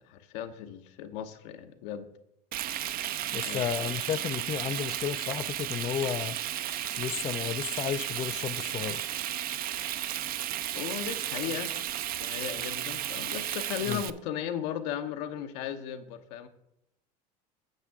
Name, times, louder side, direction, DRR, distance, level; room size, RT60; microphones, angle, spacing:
voice 1, 0.0-2.1 3.4-3.9 10.7-11.7 12.2-16.5, left 9 dB, 75° left, 0.9 m, -36 dB
Frying (food), 2.5-14.1, right 12 dB, 45° right, 0.5 m, -34 dB
voice 2, 3.3-6.4 7.0-9.0 13.9-14.0, left 9 dB, 30° left, 0.3 m, -33 dB
9.0 x 7.3 x 3.6 m
supercardioid pair, 95°, 21 cm